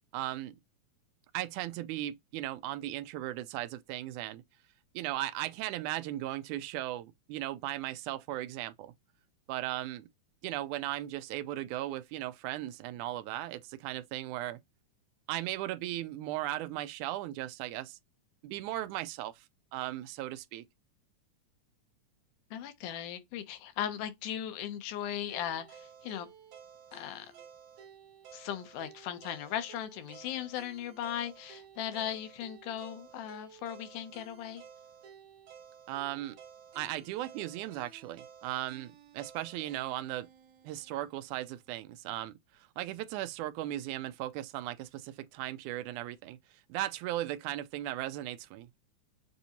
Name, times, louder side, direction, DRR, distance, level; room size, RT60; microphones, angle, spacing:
voice 1, 0.1-0.6 1.3-4.4 4.9-8.9 9.5-10.1 10.4-14.6 15.3-18.0 18.4-19.5 19.7-20.7 35.9-36.4 36.8-40.3 40.6-46.4 46.7-48.8, right 14 dB, 80° right, 1.9 m, -37 dB
voice 2, 22.5-26.3 26.9-27.3 28.3-34.6, left 10 dB, 80° left, 2.3 m, -38 dB
sound 1, 25.3-41.4, right 7 dB, 60° right, 2.2 m, -54 dB
6.9 x 2.6 x 2.8 m
omnidirectional pair, 3.6 m